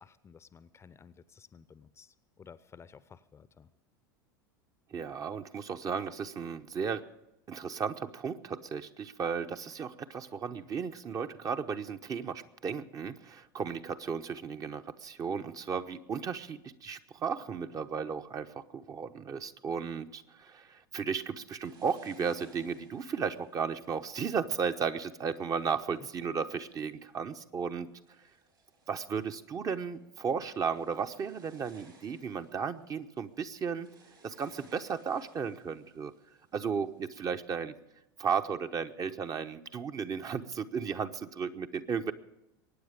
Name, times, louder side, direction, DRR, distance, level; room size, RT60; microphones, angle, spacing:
voice 1, 0.0-3.7, left 6 dB, 20° left, 16 dB, 0.7 m, -55 dB
voice 2, 4.9-7.1 7.5-27.9 28.9-33.9 34.2-36.1 36.5-37.7 38.2-42.1, right 6 dB, 30° right, 8 dB, 0.9 m, -35 dB
sound 1, 21.6-26.4 27.0-27.5 27.9-37.2, right 3 dB, 80° right, 6.1 m, -62 dB
23.0 x 9.4 x 5.2 m, 0.90 s
figure-of-eight pair, 80°, 12 cm